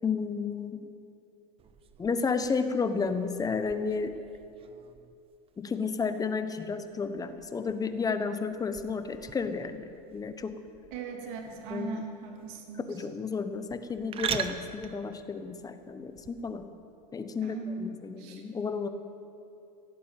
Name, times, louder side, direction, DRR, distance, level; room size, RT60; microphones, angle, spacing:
voice 1, 0.0-0.9 2.0-4.1 5.6-9.8 10.1-10.6 11.7-12.0 12.9-16.6 17.1-18.9, left 5 dB, 15° left, 9 dB, 1.0 m, -32 dB
sound 1, 1.6-16.7, right 8 dB, 25° right, 0.8 m, -43 dB
voice 2, 10.9-12.9 17.4-17.9 18.2-18.4, right 5 dB, 55° right, 1 dB, 2.6 m, -39 dB
16.5 x 8.3 x 9.0 m, 2.6 s
hypercardioid pair, 110°, 21 cm